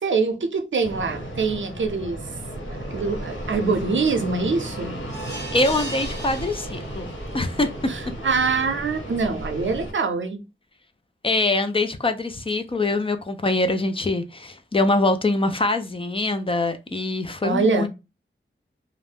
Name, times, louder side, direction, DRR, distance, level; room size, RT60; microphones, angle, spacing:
voice 1, 0.0-2.2 2.5-5.0 7.9-10.4 17.4-17.9, right 4 dB, 70° right, 0.5 m, -24 dB
Fixed-wing aircraft airplane, 0.8-9.9, right 1 dB, 80° left, 1.3 m, -34 dB
sound 1, 5.1-7.3 7.8-7.9 8.3-8.4, right 1 dB, 55° left, 1.0 m, -37 dB
voice 2, 5.5-7.7 11.2-17.9, left 2 dB, 25° left, 0.4 m, -24 dB
2.4 x 2.1 x 3.3 m
wide cardioid pair, 70°, 20 cm